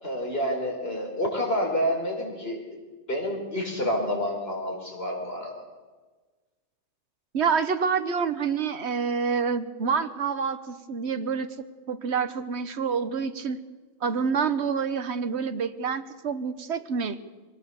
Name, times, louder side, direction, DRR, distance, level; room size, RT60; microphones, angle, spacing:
voice 1, 0.0-2.6 3.1-5.5, equal, 60° left, 0 dB, 5.0 m, -28 dB
voice 2, 7.3-13.6 14.0-17.2, right 6 dB, 70° right, 11 dB, 1.4 m, -27 dB
23.0 x 18.5 x 7.0 m, 1.3 s
omnidirectional pair, 1.2 m